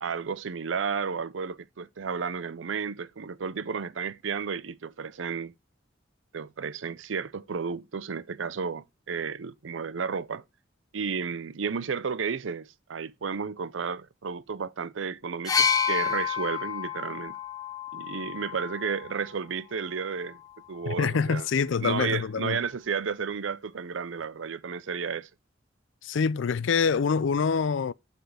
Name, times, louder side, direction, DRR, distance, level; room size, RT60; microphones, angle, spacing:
voice 1, 0.0-5.5 6.3-10.4 10.9-17.4 17.9-20.4 20.7-21.5 21.8-25.3, right 6 dB, 85° right, 0.6 m, -32 dB
sound 1, 15.5-19.3 20.3-20.5, left 7 dB, 20° left, 0.8 m, -29 dB
voice 2, 20.9-22.6 26.0-27.9, left 5 dB, 80° left, 0.4 m, -25 dB
7.8 x 4.3 x 6.9 m
head